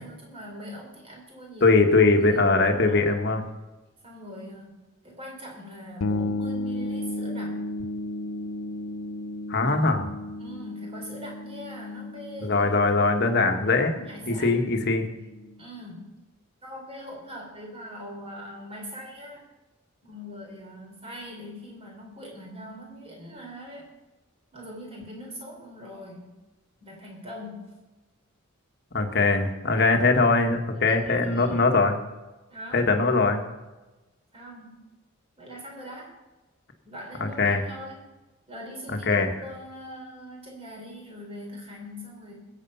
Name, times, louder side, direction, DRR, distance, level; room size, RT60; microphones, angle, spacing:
voice 1, 0.0-1.8 2.2-2.4 2.7-3.3 4.0-7.6 10.4-14.6 15.6-16.2 16.6-19.4 20.0-23.9 24.5-26.3 26.8-27.8 29.7-30.1 30.7-31.8 32.5-32.9 34.3-34.8 35.4-36.2 36.8-38.0 38.5-42.3, equal, 25° right, -1 dB, 4.2 m, -42 dB
voice 2, 1.6-3.4 9.5-10.1 12.4-13.9 14.3-15.0 28.9-31.9 32.7-33.4 37.2-37.6 38.9-39.3, left 3 dB, 50° left, 4 dB, 1.6 m, -21 dB
sound 1, 6.0-15.6, left 2 dB, 75° left, 0.6 m, -34 dB
20.5 x 8.2 x 5.6 m, 1.1 s
head